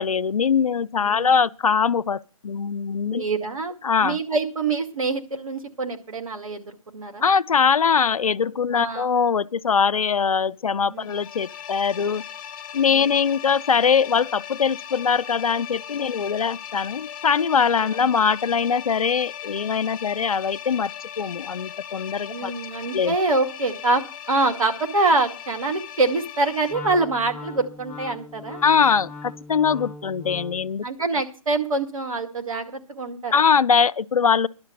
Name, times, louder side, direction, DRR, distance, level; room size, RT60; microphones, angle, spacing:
voice 1, 0.0-3.2 3.8-4.2 7.2-12.2 12.7-20.9 21.2-22.5 22.9-23.1 28.6-30.8 33.3-34.5, left 6 dB, 80° left, 0.6 m, -22 dB
voice 2, 1.0-1.3 3.1-7.2 8.7-9.1 10.9-11.0 12.9-13.1 22.3-24.0 24.3-28.6 30.8-33.3, right 3 dB, 75° right, 2.2 m, -25 dB
sound 1, 11.0-26.7, left 10 dB, 35° left, 1.0 m, -38 dB
Wind instrument woodwind instrument, 26.7-30.8, left 3 dB, 10° left, 3.8 m, -39 dB
11.5 x 6.6 x 9.2 m
hypercardioid pair, 145°, 18 cm